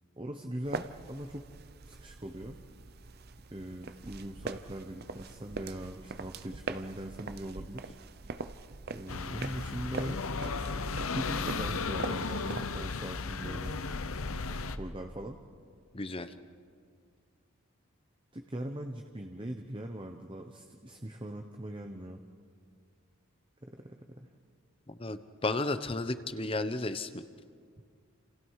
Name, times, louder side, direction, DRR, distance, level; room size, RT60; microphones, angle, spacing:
voice 1, 0.2-1.5 1.8-2.6 3.5-7.9 8.9-10.2 11.1-13.8 14.4-15.4 18.3-22.2 23.6-24.3 27.8-27.9, right 1 dB, 25° right, 4 dB, 1.0 m, -41 dB
sound 1, 0.6-12.8, right 3 dB, 45° right, 0.7 m, -43 dB
sound 2, 9.1-14.8, left 4 dB, 80° left, 1.0 m, -35 dB
voice 2, 15.9-16.3 24.9-27.2, left 2 dB, 25° left, 11 dB, 0.9 m, -33 dB
30.0 x 28.0 x 4.9 m, 2.1 s
head